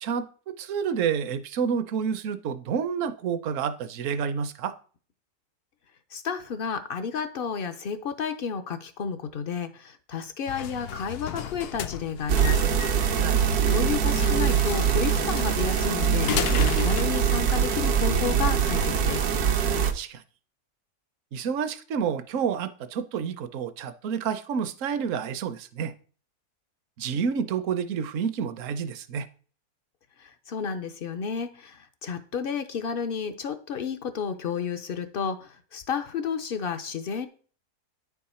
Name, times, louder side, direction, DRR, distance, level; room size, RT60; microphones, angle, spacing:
voice 1, 0.0-4.7 13.2-13.4 19.8-20.2 21.3-25.9 27.0-29.3, right 7 dB, 65° right, 1.0 m, -29 dB
voice 2, 6.1-12.7 13.6-16.3 16.7-19.3 30.2-37.3, left 6 dB, 65° left, 0.5 m, -31 dB
sound 1, 10.5-17.0, left 10 dB, 85° left, 1.1 m, -34 dB
sound 2, 12.3-19.9, right 8 dB, 80° right, 1.3 m, -23 dB
9.6 x 4.7 x 4.2 m
omnidirectional pair, 1.6 m